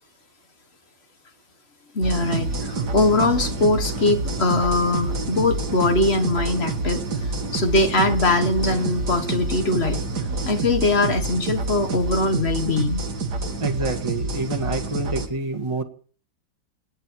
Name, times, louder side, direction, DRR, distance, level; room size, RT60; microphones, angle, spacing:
voice 1, 1.9-10.0 10.5-13.0, left 2 dB, 35° left, 8 dB, 1.6 m, -22 dB
sound 1, 2.0-15.3, right 3 dB, 55° right, 2.2 m, -28 dB
voice 2, 13.6-15.8, right 2 dB, 15° right, 1 dB, 1.7 m, -27 dB
27.0 x 10.0 x 4.7 m, 0.43 s
omnidirectional pair, 2.1 m